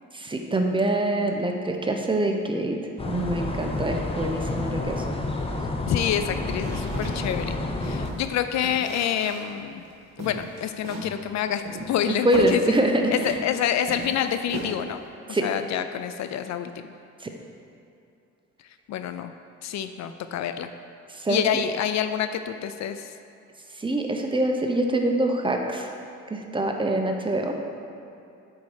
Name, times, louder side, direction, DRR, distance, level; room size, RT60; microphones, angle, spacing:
voice 1, 0.1-2.8 3.0-5.0 12.2-13.3 15.3-15.5 17.2-17.3 21.1-21.4 23.8-25.9 26.3-27.6, right 1 dB, 15° right, 3 dB, 0.8 m, -25 dB
sound 1, 3.0-8.1, left 2 dB, 20° left, 0.7 m, -30 dB
voice 2, 5.9-9.8 10.2-12.8 13.1-15.0 15.3-16.9 18.9-19.3 19.6-20.7 21.3-23.1, left 9 dB, 65° left, 9 dB, 0.4 m, -27 dB
sound 2, 6.4-8.2 8.6-9.6 9.8-9.9 10.2-11.1 11.6-13.6 13.8-15.0, right 2 dB, 60° right, 1.4 m, -36 dB
8.3 x 4.2 x 4.8 m, 2.7 s
cardioid pair, 90°, 30 cm